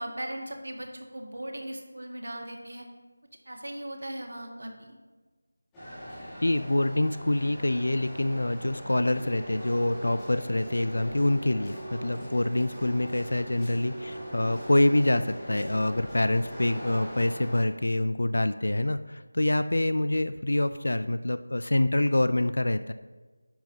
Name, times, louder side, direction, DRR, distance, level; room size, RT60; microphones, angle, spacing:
voice 1, 0.0-2.8 3.4-5.0, right 1 dB, 85° right, 2 dB, 1.5 m, -38 dB
sound 1, 5.7-17.6, equal, 5° left, 1.8 m, -42 dB
voice 2, 6.4-22.9, left 1 dB, 80° left, 12 dB, 0.4 m, -26 dB
sound 2, 9.2-16.5, right 2 dB, 25° right, 0.4 m, -44 dB
10.0 x 7.7 x 2.8 m, 1.3 s
figure-of-eight pair, 175°, 0 cm